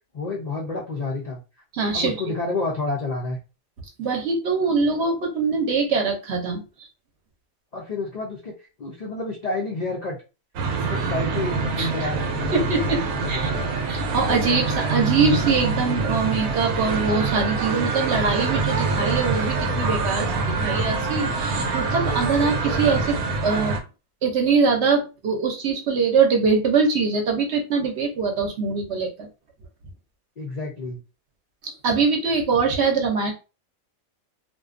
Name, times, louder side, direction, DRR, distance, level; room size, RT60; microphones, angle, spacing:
voice 1, 0.1-1.4 1.9-3.4 7.7-10.2 10.8-12.8 13.2-13.7 30.4-31.0, left 3 dB, 85° left, -2 dB, 0.3 m, -29 dB
voice 2, 1.7-2.1 4.0-6.9 11.8-12.1 12.5-13.0 13.3-13.5 13.9-20.3 20.6-23.8 24.2-29.3 31.8-33.3, right 4 dB, 60° right, 3 dB, 0.8 m, -23 dB
sound 1, 10.6-23.8, right 4 dB, 85° right, 1.0 m, -25 dB
2.6 x 2.2 x 2.4 m, 0.30 s
omnidirectional pair, 1.5 m